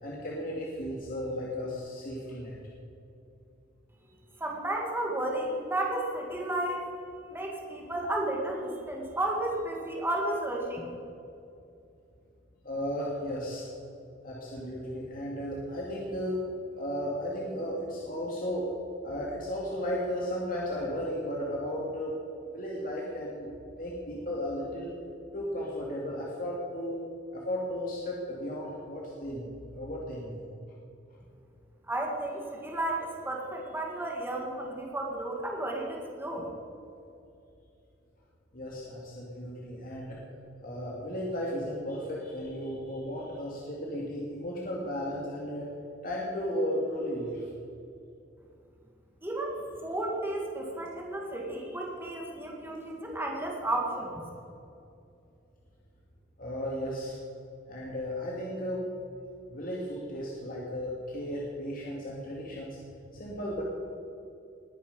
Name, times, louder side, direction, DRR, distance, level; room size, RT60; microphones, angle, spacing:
voice 1, 0.0-2.6 12.6-13.7 14.2-16.4 16.8-18.7 19.0-22.2 22.5-23.5 23.8-24.9 25.3-27.0 27.3-30.5 38.5-40.2 40.6-45.7 46.0-47.5 56.4-57.2 57.7-58.9 59.5-62.8 63.1-63.6, equal, 50° left, -4 dB, 2.3 m, -35 dB
voice 2, 4.4-6.9 7.3-10.9 31.9-36.5 49.2-54.2, right 1 dB, 10° right, -1 dB, 2.1 m, -33 dB
20.5 x 9.4 x 5.5 m, 2.6 s
head